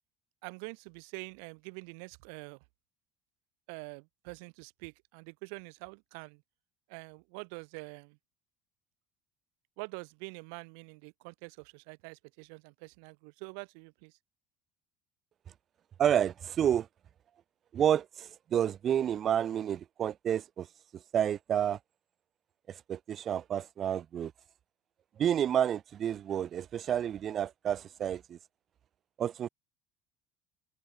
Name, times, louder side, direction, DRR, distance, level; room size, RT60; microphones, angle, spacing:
voice 1, 0.4-2.6 3.7-6.4 6.9-8.2 9.8-14.2, right 40 dB or more, 80° right, 2.0 m, -46 dB
voice 2, 16.0-16.9 17.7-21.8 22.7-24.3 25.2-28.4 29.2-29.5, right 9 dB, 45° right, 0.5 m, -30 dB
supercardioid pair, 85°, 0 cm